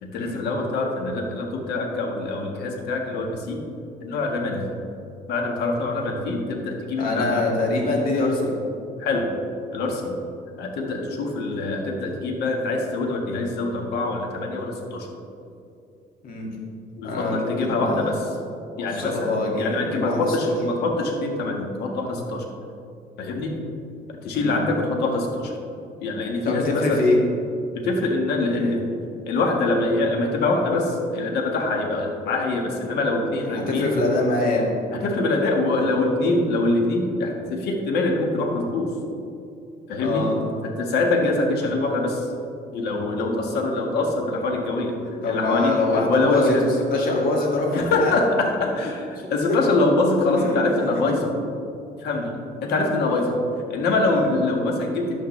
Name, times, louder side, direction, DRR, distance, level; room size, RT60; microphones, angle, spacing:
voice 1, 0.0-3.6 4.0-4.7 5.3-7.4 9.0-9.3 9.7-10.1 10.6-15.1 17.0-18.3 18.8-22.4 23.2-23.5 24.1-25.5 26.0-27.0 27.7-28.8 29.2-33.9 34.9-38.9 39.9-40.3 40.8-42.3 42.7-45.0 45.3-46.7 47.7-51.4 52.0-52.3 52.6-53.4 53.7-55.2, left 2 dB, 80° left, 2 dB, 1.6 m, -24 dB
voice 2, 7.0-8.5 16.2-16.5 17.0-18.1 18.9-20.2 24.3-24.6 26.4-27.2 28.5-28.8 33.5-34.7 40.0-40.4 45.2-46.5 46.9-48.2 49.5-49.6 50.4-50.6 50.9-51.0 54.1-54.3, left 2 dB, 55° left, -2 dB, 2.3 m, -24 dB
11.0 x 8.9 x 3.3 m, 2.6 s
cardioid pair, 110°, 17 cm